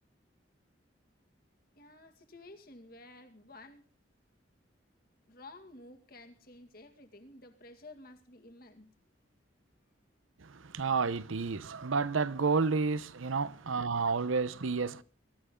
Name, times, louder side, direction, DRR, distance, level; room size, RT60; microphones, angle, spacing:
voice 1, 1.7-3.8 5.3-8.9 13.4-13.5, left 2 dB, 50° left, 2.2 m, -52 dB
voice 2, 10.4-15.0, right 4 dB, 85° right, 0.8 m, -30 dB
23.0 x 13.5 x 3.8 m
head